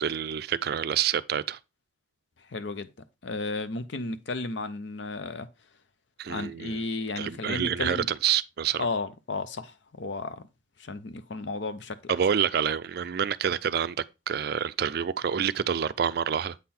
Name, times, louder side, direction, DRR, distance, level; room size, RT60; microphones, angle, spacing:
voice 1, 0.0-1.6 6.2-6.8 7.2-8.9 12.1-16.6, right 8 dB, 55° right, 0.4 m, -27 dB
voice 2, 2.5-2.9 3.2-5.5 6.3-8.1 8.8-10.4 10.8-12.1, left 3 dB, 70° left, 0.7 m, -33 dB
8.1 x 3.8 x 4.2 m
head